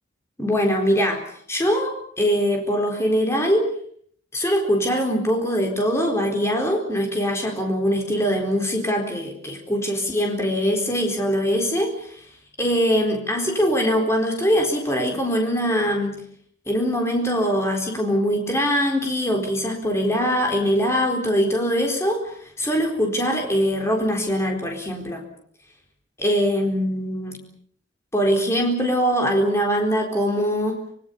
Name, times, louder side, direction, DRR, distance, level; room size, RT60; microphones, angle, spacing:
voice 1, 0.4-1.2 1.5-3.7 4.3-12.2 12.6-16.2 16.7-25.2 26.2-27.4 28.1-30.8, equal, 15° left, 2 dB, 4.2 m, -22 dB
25.5 x 23.5 x 7.1 m, 0.62 s
head